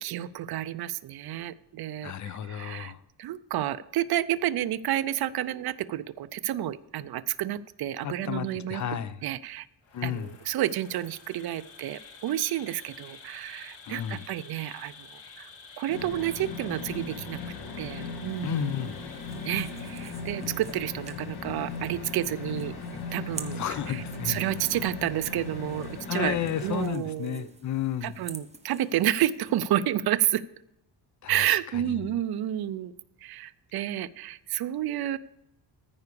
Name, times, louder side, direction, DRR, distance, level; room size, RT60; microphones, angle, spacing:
voice 1, 0.0-2.9 3.2-8.8 9.2-9.7 10.0-15.1 15.4-15.5 15.8-17.4 17.8-18.7 19.4-22.7 23.1-23.6 23.9-26.4 26.6-27.5 28.0-30.4 31.3-32.9 33.2-35.2, right 12 dB, 60° right, 0.6 m, -30 dB
voice 2, 2.0-3.0 8.0-9.2 9.9-10.3 13.8-14.2 18.4-19.0 23.6-24.4 26.1-28.2 31.2-31.6 32.1-32.2, left 10 dB, 45° left, 0.6 m, -32 dB
Insect, 9.8-20.6, left 5 dB, 85° left, 1.8 m, -50 dB
sound 1, 15.9-26.9, left 4 dB, 60° left, 1.7 m, -38 dB
sound 2, 18.3-29.8, right 4 dB, 15° right, 0.8 m, -49 dB
14.0 x 4.8 x 6.8 m
wide cardioid pair, 160°, 42 cm